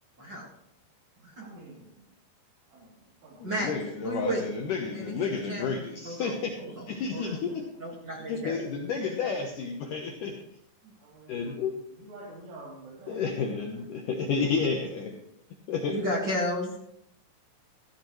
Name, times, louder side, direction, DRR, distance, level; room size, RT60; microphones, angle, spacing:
voice 1, 1.3-2.2 2.7-3.5 6.9-7.6 10.9-13.3, right 2 dB, 85° right, -6 dB, 5.6 m, -48 dB
voice 2, 3.4-6.6 6.9-7.5 8.3-10.4 11.3-11.7 13.1-15.1 15.7-16.0, left 5 dB, 80° left, 2 dB, 1.8 m, -31 dB
voice 3, 4.0-4.4 4.9-5.7 6.0-7.2 7.8-8.6 15.9-16.8, equal, 55° right, -2 dB, 1.2 m, -33 dB
16.0 x 13.5 x 3.2 m, 0.74 s
omnidirectional pair, 5.4 m